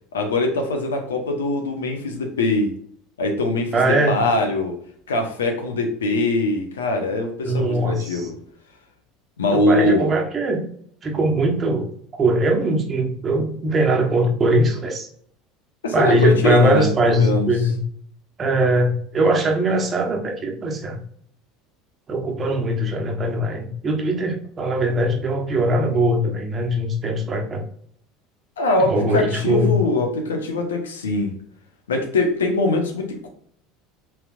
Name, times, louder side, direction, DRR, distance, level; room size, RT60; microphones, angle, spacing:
voice 1, 0.1-2.7 3.2-4.7 5.1-8.3 9.4-10.1 15.8-17.5 28.6-31.3 31.9-33.3, left 2 dB, 80° left, 4 dB, 0.9 m, -22 dB
voice 2, 3.7-4.2 7.4-8.3 9.5-10.6 11.0-11.9 12.2-15.1 15.9-17.8 18.4-21.0 22.1-27.6 28.8-29.8, right 1 dB, 30° right, 2 dB, 1.1 m, -21 dB
5.8 x 3.6 x 2.4 m, 0.63 s
hypercardioid pair, 75°, 0 cm